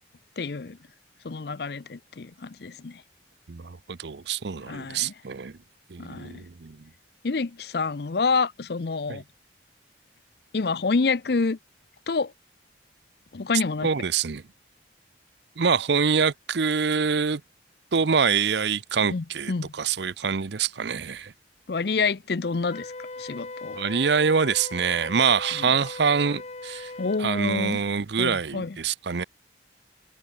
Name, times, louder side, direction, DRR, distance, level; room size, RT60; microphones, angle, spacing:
voice 1, 0.4-0.8 1.2-3.0 4.7-5.1 6.0-6.5 7.2-9.2 10.5-11.6 12.1-12.3 13.3-13.9 19.1-19.7 21.7-22.9 23.2-23.8 25.6-25.7 27.0-27.8 28.2-28.8, left 4 dB, 60° left, 0.6 m, -27 dB
voice 2, 3.5-5.6 5.9-6.9 9.1-9.2 13.8-14.4 15.6-17.4 17.9-21.3 23.7-26.9 27.2-29.2, right 6 dB, 65° right, 0.6 m, -25 dB
Wind instrument woodwind instrument, 22.7-27.2, left 3 dB, 35° left, 1.0 m, -39 dB
head